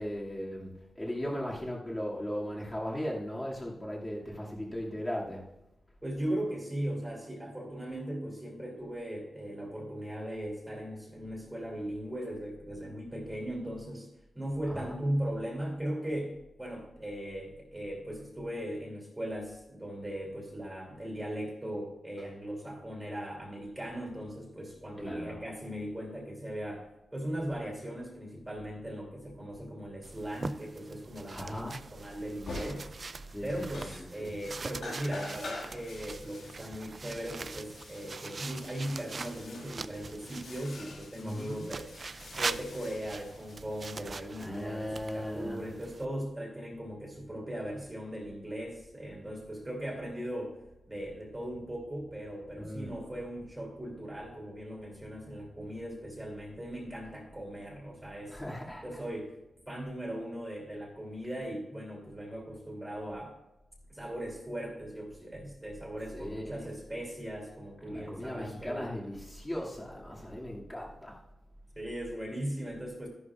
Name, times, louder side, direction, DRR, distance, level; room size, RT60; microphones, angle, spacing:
voice 1, 0.0-5.5 14.7-14.9 25.0-25.4 31.3-31.8 33.3-34.3 41.2-41.6 44.4-45.6 52.6-52.9 58.3-59.0 66.1-66.7 67.8-71.2, equal, 15° left, -4 dB, 2.4 m, -38 dB
voice 2, 6.0-14.1 14.3-26.8 27.1-33.1 33.4-41.9 42.3-50.6 50.9-58.4 58.8-59.3 59.7-63.3 63.9-68.9 71.8-73.1, right 1 dB, 15° right, -1 dB, 2.9 m, -38 dB
sound 1, 30.0-40.6 41.6-46.1, right 4 dB, 40° right, 0.3 m, -43 dB
sound 2, 32.4-33.2 33.5-34.4 34.7-44.2, left 2 dB, 75° left, 2.1 m, -46 dB
13.0 x 11.5 x 2.5 m, 0.93 s
wide cardioid pair, 125°, 0 cm